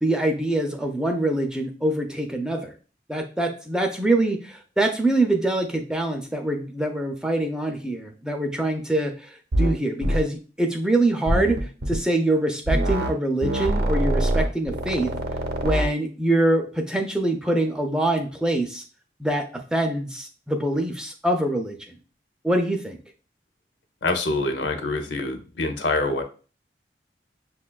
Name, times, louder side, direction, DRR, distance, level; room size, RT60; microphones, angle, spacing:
voice 1, 0.0-2.7 3.1-11.6 11.9-15.1 15.6-18.8 19.2-21.8 22.4-23.0, right 1 dB, 5° right, 4 dB, 0.3 m, -24 dB
sound 1, 9.5-9.7 10.0-10.2 11.3-12.0 12.7-13.1 13.4-15.9, right 1 dB, 60° right, 0.6 m, -24 dB
voice 2, 24.0-26.2, left 2 dB, 80° left, 5 dB, 0.6 m, -25 dB
6.1 x 2.2 x 2.2 m, 0.37 s
head